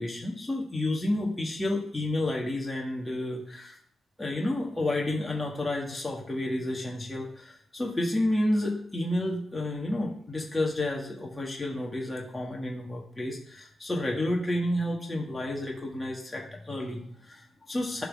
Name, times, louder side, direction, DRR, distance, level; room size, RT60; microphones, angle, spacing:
voice 1, 0.0-3.8 4.2-18.0, left 1 dB, 15° left, -2 dB, 1.6 m, -30 dB
11.0 x 3.8 x 3.7 m, 0.69 s
cardioid pair, 85°, 0 cm